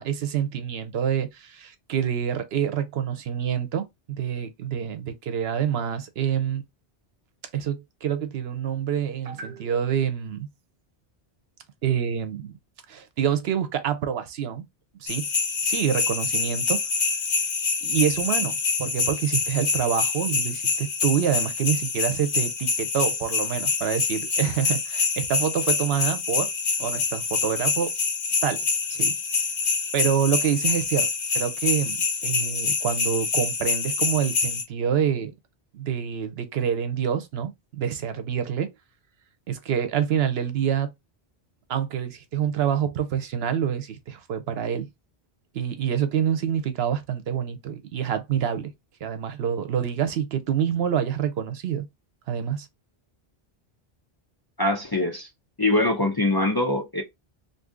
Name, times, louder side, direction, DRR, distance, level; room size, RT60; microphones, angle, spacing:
voice 1, 0.0-6.6 7.5-10.5 11.8-12.5 12.9-14.6 15.0-15.3 15.6-16.8 17.8-26.5 26.8-27.9 28.4-28.6 28.9-29.2 29.9-31.1 31.3-35.3 35.7-38.7 39.5-40.9 41.7-44.9 45.5-48.7 49.0-51.9 52.3-52.7, right 8 dB, 75° right, 0.9 m, -27 dB
sound 1, 15.1-34.6, left 4 dB, 70° left, 1.1 m, -26 dB
voice 2, 54.6-55.3 55.6-57.0, left 2 dB, 30° left, 0.5 m, -23 dB
2.7 x 2.6 x 3.5 m
omnidirectional pair, 1.1 m